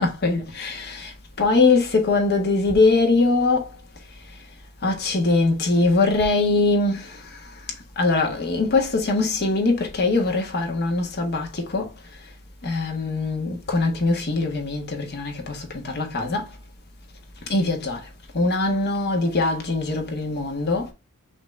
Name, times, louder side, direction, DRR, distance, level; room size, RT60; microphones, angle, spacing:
voice 1, 0.0-3.7 4.8-7.4 8.0-11.9 12.6-16.5 17.5-18.1 18.3-20.9, left 3 dB, 50° left, 1.4 m, -22 dB
5.8 x 2.8 x 3.2 m
head